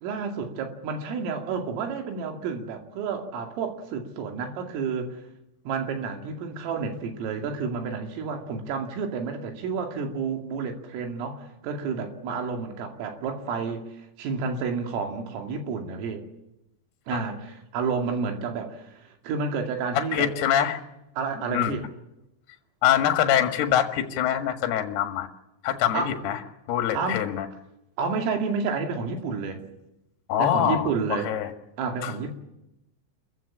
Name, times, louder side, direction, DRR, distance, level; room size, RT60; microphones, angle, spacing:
voice 1, 0.0-5.2 5.7-13.8 14.2-16.2 17.1-20.3 21.2-21.8 25.9-26.2 26.9-27.3 28.0-29.6 30.4-31.3 31.8-32.3, right 5 dB, 80° right, 4 dB, 5.0 m, -30 dB
voice 2, 19.9-20.8 21.5-21.8 22.8-25.3 25.6-26.4 26.7-27.5 30.3-31.5 32.0-32.1, left 10 dB, 60° left, 6 dB, 3.3 m, -24 dB
28.0 x 15.0 x 8.7 m, 0.89 s
omnidirectional pair, 5.9 m